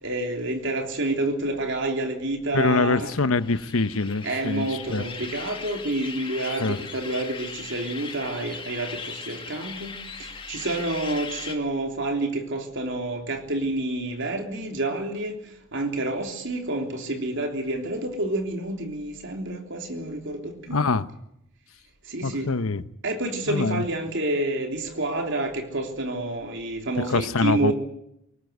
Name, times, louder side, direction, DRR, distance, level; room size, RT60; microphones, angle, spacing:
voice 1, 0.0-3.1 4.2-15.4 15.7-20.8 22.1-22.5 23.0-27.7, right 2 dB, 55° right, 3.4 m, -29 dB
voice 2, 2.5-5.0 6.6-6.8 20.7-21.1 22.2-22.8 23.5-23.8 27.0-27.7, left 3 dB, 70° left, 0.9 m, -24 dB
sound 1, 3.4-11.6, left 5 dB, 25° left, 2.1 m, -38 dB
22.0 x 19.0 x 8.0 m
head